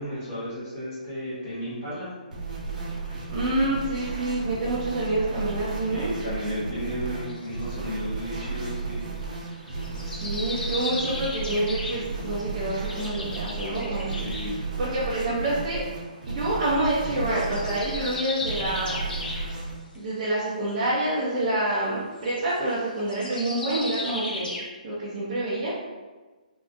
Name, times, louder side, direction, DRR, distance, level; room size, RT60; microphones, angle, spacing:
voice 1, 0.0-2.1 5.9-9.1 9.7-9.8 14.2-14.6, equal, 15° left, -9 dB, 0.8 m, -33 dB
sound 1, 2.3-19.8, right 4 dB, 60° right, 1.0 m, -34 dB
voice 2, 3.3-6.1 10.0-14.1 14.8-15.8 16.3-19.0 19.9-24.5 24.8-25.7, right 1 dB, 15° right, -11 dB, 0.5 m, -27 dB
sound 2, 7.3-7.6 9.2-14.5 16.6-17.0 17.3-19.5 19.9-20.0 20.4-20.5 22.2-24.6, left 2 dB, 85° left, 0.9 m, -35 dB
3.6 x 2.4 x 2.5 m, 1.3 s
hypercardioid pair, 180°, 5 cm